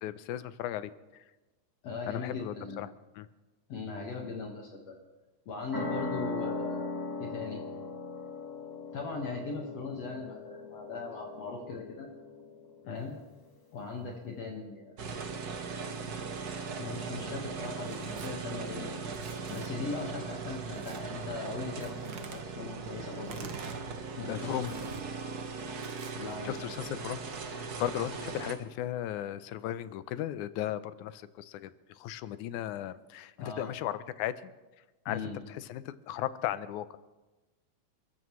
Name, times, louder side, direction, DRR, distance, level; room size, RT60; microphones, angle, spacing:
voice 1, 0.0-1.2 2.1-3.3 12.9-13.0 24.3-24.7 26.5-34.3 35.1-37.0, left 12 dB, 80° left, 14 dB, 2.0 m, -36 dB
voice 2, 1.8-2.8 3.7-4.9 5.5-6.9 7.2-7.6 8.9-12.1 12.9-13.2 13.7-15.0 16.8-18.9 19.5-23.5 24.2-24.9 26.2-26.9 33.4-33.7 35.1-35.4, left 4 dB, 60° left, 0 dB, 2.5 m, -39 dB
sound 1, 5.7-12.9, left 3 dB, 15° left, 0.8 m, -39 dB
sound 2, 15.0-28.5, right 4 dB, 80° right, 0.8 m, -39 dB
Tearing, 17.8-18.3 19.1-19.7 20.8-21.0 21.8-22.4 23.2-23.8 24.6-25.0 25.8-26.4, right 6 dB, 60° right, 1.2 m, -47 dB
29.5 x 14.0 x 3.2 m, 1.1 s
omnidirectional pair, 3.6 m